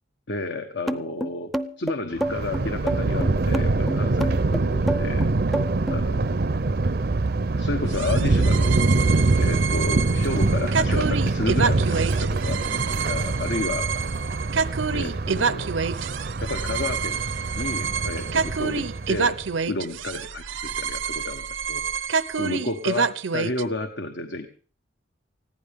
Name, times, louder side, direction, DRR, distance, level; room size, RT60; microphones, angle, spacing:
voice 1, 0.3-5.3 5.9-6.3 7.5-8.8 9.4-13.9 14.9-15.7 16.4-17.2 17.5-19.4 19.7-21.8 22.3-24.5, left 2 dB, 65° left, 7 dB, 1.3 m, -31 dB
sound 1, 0.9-6.0, right 1 dB, ahead, 0.6 m, -28 dB
Thunder, 2.2-19.5, right 3 dB, 50° right, 0.6 m, -24 dB
sound 2, 7.9-23.6, right 6 dB, 85° right, 0.7 m, -28 dB
20.5 x 15.0 x 3.6 m, 0.41 s
head